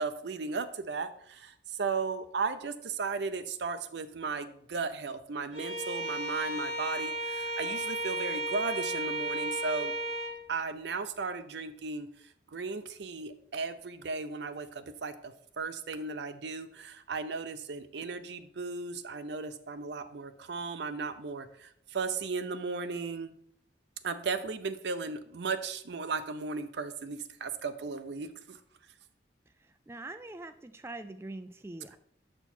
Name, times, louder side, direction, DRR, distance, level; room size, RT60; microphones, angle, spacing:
voice 1, 0.0-9.9 10.5-12.1 12.5-23.3 24.0-28.6, right 4 dB, 65° right, 10 dB, 0.5 m, -36 dB
Bowed string instrument, 5.5-10.4, right 2 dB, 30° right, 1.4 m, -34 dB
voice 2, 29.9-32.0, right 2 dB, 15° right, 8 dB, 0.3 m, -43 dB
6.9 x 4.5 x 4.2 m, 0.70 s
head